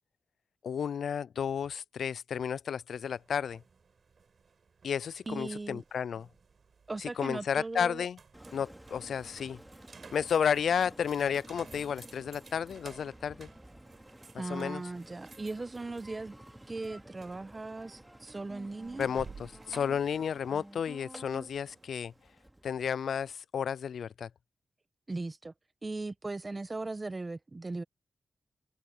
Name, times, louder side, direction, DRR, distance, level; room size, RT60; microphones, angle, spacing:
voice 1, 0.6-3.6 4.8-6.3 7.0-8.2 8.5-9.6 10.1-13.5 14.5-14.8 19.0-22.1 22.6-24.3, left 7 dB, 85° left, 0.3 m, -32 dB
sound 1, 3.0-22.2, right 5 dB, 60° right, 7.5 m, -56 dB
voice 2, 5.3-5.8 6.9-8.1 14.3-16.4 16.7-19.1 25.1-25.5 25.8-27.8, right 2 dB, 30° right, 1.3 m, -38 dB
Engine, 8.3-23.3, right 1 dB, 10° right, 3.0 m, -52 dB
cardioid pair, 75°, 0 cm